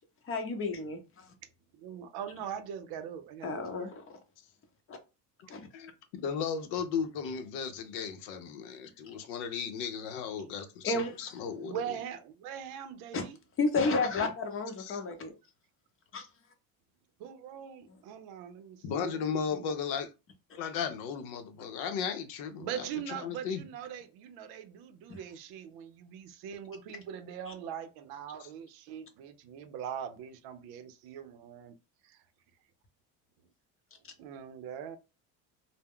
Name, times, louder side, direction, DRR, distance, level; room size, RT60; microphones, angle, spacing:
voice 1, 0.3-1.2 3.4-4.0 4.9-5.0 5.5-5.6 10.8-11.1 13.1-13.2 13.6-15.3 16.1-16.3, left 3 dB, 35° left, 0.7 m, -31 dB
voice 2, 1.7-3.9 11.5-13.4 17.2-19.7 22.6-31.8 32.0-32.2 34.2-35.0, right 8 dB, 65° right, 0.6 m, -42 dB
voice 3, 6.2-11.8 14.8-15.0 18.8-20.1 20.6-23.6 28.4-28.5, left 7 dB, 70° left, 0.7 m, -35 dB
2.2 x 2.1 x 3.5 m
supercardioid pair, 105°, 40 cm